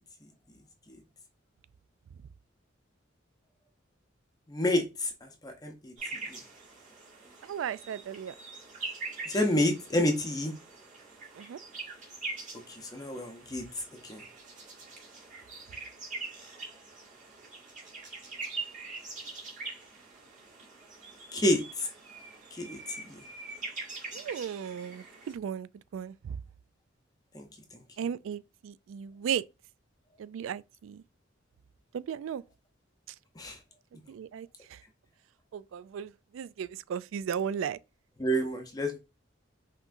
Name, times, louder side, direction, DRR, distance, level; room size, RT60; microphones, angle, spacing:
voice 1, 4.5-5.9 6.3-6.4 9.3-10.5 12.7-13.6 14.1-14.2 21.3-21.9 22.5-22.8 23.1-23.2 27.3-27.5 27.7-27.8 33.4-33.6 38.2-39.0, left 1 dB, 20° left, 0.6 m, -29 dB
sound 1, 6.0-25.3, right 3 dB, 40° right, 1.9 m, -43 dB
voice 2, 7.4-8.3 11.4-11.6 24.1-26.4 28.0-29.4 30.2-31.0 31.9-32.4 34.1-34.8 35.5-37.8, right 8 dB, 80° right, 0.3 m, -36 dB
5.7 x 3.0 x 2.5 m
head